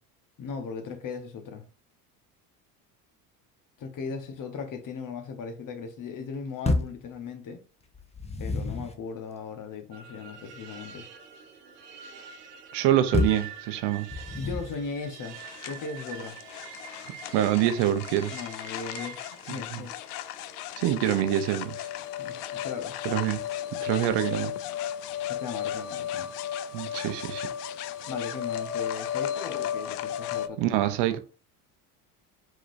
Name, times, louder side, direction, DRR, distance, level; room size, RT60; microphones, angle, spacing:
voice 1, 0.4-1.6 3.8-7.6 8.4-11.1 14.4-15.4 15.6-16.4 18.3-19.2 19.5-19.9 22.2-23.1 25.3-26.3 28.1-30.8, left 5 dB, 45° left, 1.1 m, -37 dB
sound 1, 6.6-7.0 7.9-9.0 13.1-13.5 14.1-14.8, left 3 dB, 15° left, 0.8 m, -28 dB
sound 2, 9.9-24.3, right 6 dB, 85° right, 1.0 m, -47 dB
voice 2, 12.7-14.1 17.3-18.3 19.7-19.8 20.8-21.9 23.0-23.4 23.8-24.5 26.7-27.5 30.6-31.2, right 12 dB, 60° right, 0.8 m, -25 dB
sound 3, 15.4-30.5, left 10 dB, 75° left, 0.5 m, -35 dB
4.8 x 3.8 x 2.6 m
hypercardioid pair, 70°, 46 cm